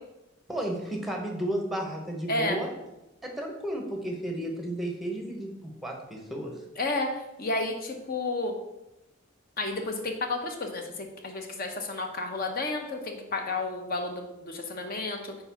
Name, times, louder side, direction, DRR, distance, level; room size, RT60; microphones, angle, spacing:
voice 1, 0.5-2.7 3.2-6.5, right 1 dB, ahead, 1 dB, 0.9 m, -33 dB
voice 2, 2.3-2.6 6.8-8.5 9.6-15.4, left 2 dB, 45° left, 4 dB, 0.8 m, -31 dB
4.5 x 4.0 x 5.7 m, 0.92 s
head